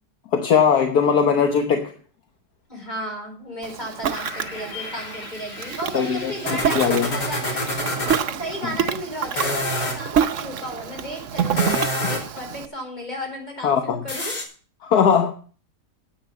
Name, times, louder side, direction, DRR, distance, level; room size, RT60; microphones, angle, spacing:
voice 1, 0.3-1.9 5.9-6.3 6.7-7.1 8.6-8.7 13.6-14.0 14.8-15.3, left 7 dB, 65° left, 1.5 m, -19 dB
voice 2, 2.7-7.6 8.3-14.3, equal, 25° left, 4.7 m, -34 dB
Ocean, 3.6-12.7, right 8 dB, 55° right, 1.0 m, -28 dB
sound 1, 4.1-8.2 9.2-10.0 11.4-12.4 14.1-14.4, left 1 dB, 85° left, 3.7 m, -28 dB
10.5 x 8.1 x 7.1 m
omnidirectional pair, 1.8 m